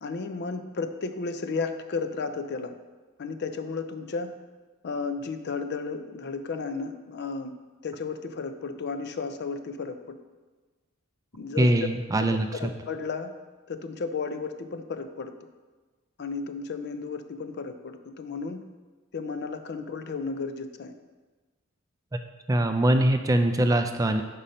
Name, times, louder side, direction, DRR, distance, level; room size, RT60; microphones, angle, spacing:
voice 1, 0.0-2.7 3.2-4.3 4.8-7.6 7.8-10.2 11.3-11.7 12.2-13.3 13.7-15.3 16.2-18.7 19.1-20.9, left 4 dB, 50° left, 9 dB, 0.5 m, -33 dB
voice 2, 11.6-12.5 22.5-24.2, right 1 dB, 15° right, 7 dB, 0.3 m, -22 dB
5.6 x 5.4 x 5.1 m, 1.3 s
head